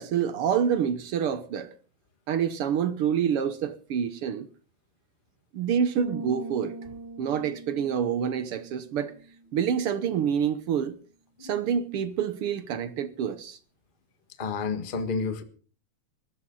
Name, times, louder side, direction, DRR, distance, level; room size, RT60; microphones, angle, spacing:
voice 1, 0.0-1.7 2.3-4.5 5.5-6.9 7.2-9.1 9.5-11.0 11.4-13.6, right 8 dB, 65° right, 1.5 m, -27 dB
sound 1, 6.0-9.7, right 3 dB, 85° right, 1.0 m, -41 dB
voice 2, 14.4-15.4, left 4 dB, 30° left, 1.0 m, -30 dB
20.5 x 15.5 x 3.9 m
omnidirectional pair, 3.4 m